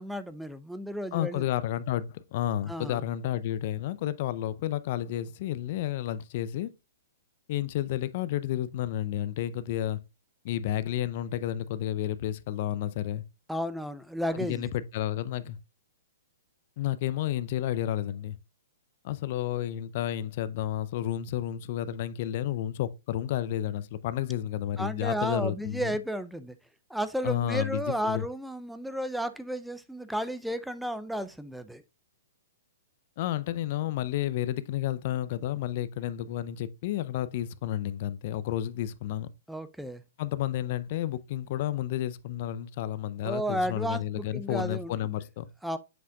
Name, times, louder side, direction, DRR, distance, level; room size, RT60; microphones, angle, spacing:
voice 1, 0.0-1.4 2.7-3.0 13.5-14.6 24.8-26.6 26.9-31.8 39.5-40.0 43.2-44.9 45.6-45.8, equal, ahead, 0.5 m, -33 dB
voice 2, 1.1-6.7 7.5-10.0 10.4-13.2 14.3-15.6 16.8-18.4 19.0-25.9 27.2-28.2 33.2-39.3 40.2-45.5, left 12 dB, 50° left, 0.5 m, -31 dB
7.4 x 5.6 x 2.3 m
hypercardioid pair, 120°, 0 cm